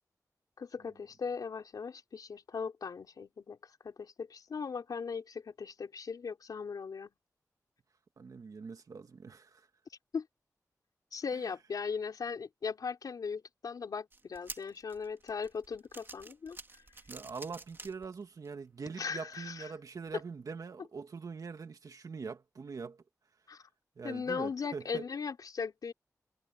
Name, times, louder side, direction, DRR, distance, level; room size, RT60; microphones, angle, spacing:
voice 1, 0.6-3.6 3.8-7.1 10.1-10.3 11.1-16.6 19.0-19.7 23.5-23.6 24.0-25.9, left 5 dB, 90° left, 4.2 m, -38 dB
voice 2, 8.2-9.7 17.1-23.0 24.0-25.0, right 5 dB, 70° right, 2.2 m, -43 dB
sound 1, 14.1-18.5 19.0-19.1 20.1-20.2, right 3 dB, 35° right, 2.2 m, -49 dB
wide cardioid pair, 110°, 6 cm